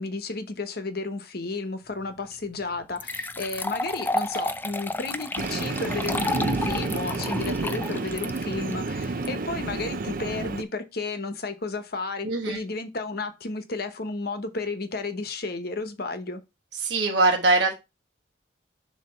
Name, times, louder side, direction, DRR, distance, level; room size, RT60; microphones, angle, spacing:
voice 1, 0.0-16.4, left 3 dB, 55° left, 1.0 m, -32 dB
sound 1, 2.3-2.4 3.0-9.3, left 2 dB, 10° left, 0.3 m, -31 dB
Train, 5.4-10.6, right 3 dB, 50° right, 0.6 m, -30 dB
voice 2, 12.2-12.6 16.8-17.7, right 3 dB, 65° right, 1.2 m, -22 dB
6.8 x 3.0 x 5.5 m
head